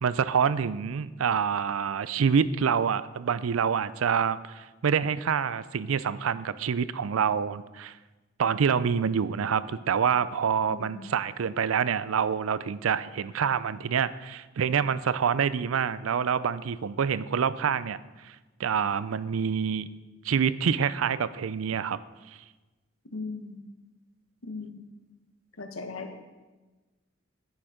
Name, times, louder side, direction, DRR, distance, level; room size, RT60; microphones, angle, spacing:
voice 1, 0.0-7.9 8.4-18.0 18.6-19.9 20.2-22.0, right 7 dB, 85° right, 16 dB, 0.4 m, -26 dB
voice 2, 10.7-11.1 23.1-23.6 24.4-24.8 25.6-26.1, left 3 dB, 90° left, 5 dB, 1.3 m, -38 dB
10.5 x 8.6 x 5.0 m, 1.2 s
head